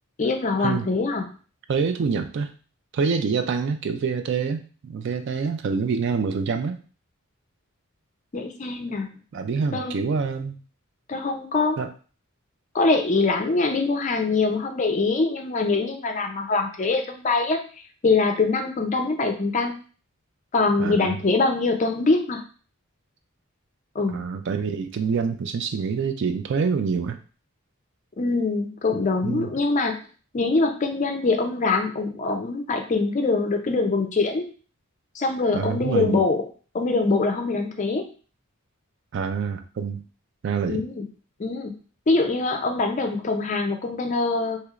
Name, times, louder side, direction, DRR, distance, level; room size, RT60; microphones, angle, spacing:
voice 1, 0.2-1.3 8.3-9.1 9.7-9.9 11.1-11.8 12.7-17.6 18.0-19.8 20.5-22.4 24.0-24.3 28.2-30.0 30.3-34.4 35.1-36.4 36.7-38.1 40.7-41.1 41.4-41.7 42.1-44.6, left 3 dB, 35° left, 4 dB, 0.4 m, -23 dB
voice 2, 1.7-2.5 2.9-6.8 9.3-10.6 11.8-11.9 20.8-21.2 24.1-27.2 28.9-29.5 35.5-36.2 39.1-40.0 40.4-40.9, right 5 dB, 55° right, 8 dB, 0.3 m, -26 dB
3.1 x 2.9 x 2.4 m, 0.38 s
head